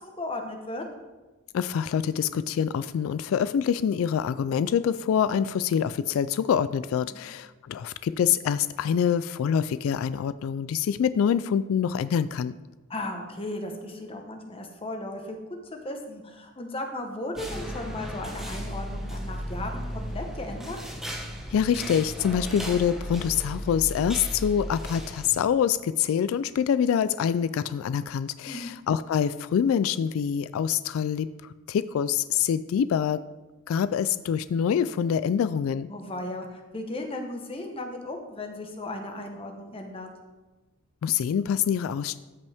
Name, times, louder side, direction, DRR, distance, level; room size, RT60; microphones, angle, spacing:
voice 1, 0.0-0.8 7.1-7.2 12.9-15.4 15.6-20.8 28.5-28.7 35.9-40.1, left 1 dB, 25° left, 4 dB, 1.1 m, -36 dB
voice 2, 1.5-12.5 21.5-31.3 31.7-33.2 33.7-35.9 41.0-42.2, left 8 dB, 85° left, 15 dB, 0.3 m, -25 dB
sound 1, 17.4-25.3, equal, ahead, 0.9 m, -35 dB
13.5 x 5.4 x 3.5 m, 1.2 s
head